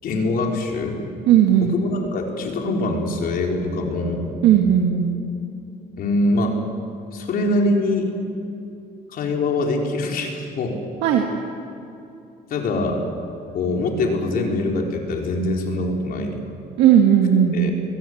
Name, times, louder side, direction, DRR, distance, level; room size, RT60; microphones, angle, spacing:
voice 1, 0.0-1.0 1.6-4.3 6.0-6.6 7.1-8.1 9.1-10.8 12.5-13.0 13.5-16.4 17.5-17.7, left 2 dB, 60° left, 1 dB, 4.5 m, -23 dB
voice 2, 1.3-1.8 4.4-5.2 11.0-11.2 16.8-17.7, right 10 dB, 90° right, 1 dB, 2.0 m, -16 dB
23.0 x 21.5 x 8.0 m, 2.6 s
cardioid pair, 110°, 17 cm